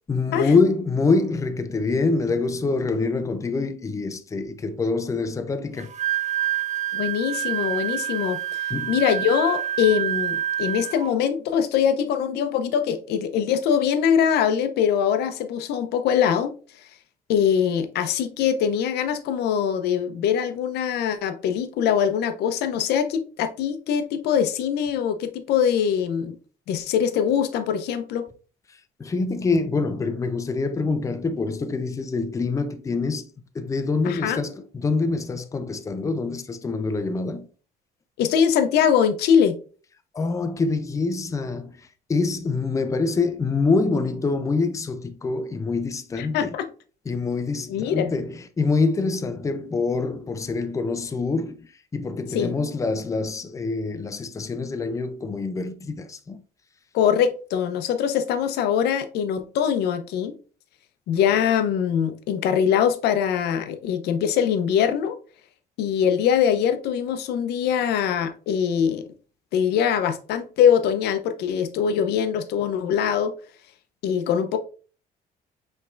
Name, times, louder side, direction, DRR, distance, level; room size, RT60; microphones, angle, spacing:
voice 1, 0.1-5.9 8.7-9.0 28.7-33.3 33.5-37.5 40.1-46.5 47.1-56.4, left 3 dB, 20° left, 0.5 m, -25 dB
Wind instrument woodwind instrument, 5.8-11.1, right 11 dB, 45° right, 0.5 m, -27 dB
voice 2, 6.9-8.4 8.9-16.6 17.3-26.4 26.7-28.3 34.0-34.4 38.2-39.6 46.2-46.7 47.7-48.1 52.3-52.5 56.9-60.3 61.1-65.2 65.8-69.1 69.5-73.3 74.0-74.6, left 8 dB, 80° left, 0.6 m, -22 dB
5.4 x 3.3 x 2.5 m
cardioid pair, 110°, 17 cm